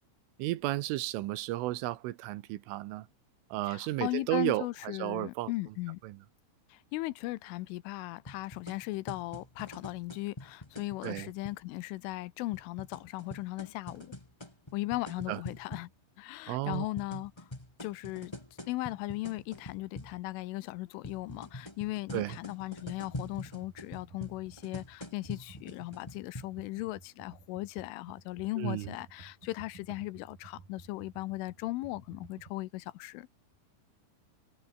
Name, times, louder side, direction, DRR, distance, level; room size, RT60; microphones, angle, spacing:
voice 1, 0.4-3.1 3.5-5.5 6.0-6.2 11.0-11.3 15.3-15.4 16.5-16.9 17.1-17.2 22.1-22.4 28.6-29.0, right 17 dB, 80° right, 3.5 m, -33 dB
voice 2, 3.6-6.0 6.7-14.1 14.7-15.9 16.2-17.5 17.8-18.3 18.7-33.3, left 19 dB, 80° left, 3.2 m, -37 dB
sound 1, 8.3-11.6 12.5-15.9 16.7-20.2 21.0-26.4, left 1 dB, 25° left, 0.5 m, -45 dB
Computer keyboard, 23.1-32.5, right 5 dB, 40° right, 6.5 m, -54 dB
omnidirectional pair, 6.0 m